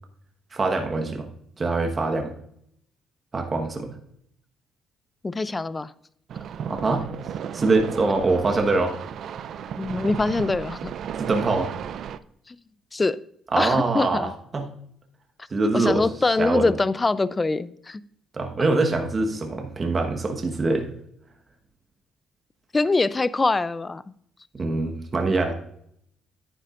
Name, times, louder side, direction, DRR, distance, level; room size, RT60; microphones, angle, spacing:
voice 1, 0.5-1.3 1.6-2.3 3.3-3.9 6.6-7.1 7.5-8.9 11.2-11.7 13.5-14.7 15.5-16.1 16.4-16.7 18.3-20.9 24.5-25.5, right 3 dB, 30° right, 4 dB, 1.2 m, -24 dB
voice 2, 5.2-5.9 9.8-10.9 12.5-12.6 12.9-13.2 13.6-14.3 15.7-18.0 22.7-24.0, left 3 dB, 20° left, 16 dB, 0.5 m, -24 dB
sound 1, 6.3-12.2, right 8 dB, 65° right, 0.5 m, -34 dB
10.0 x 10.0 x 2.5 m, 0.70 s
cardioid pair, 90°, 0 cm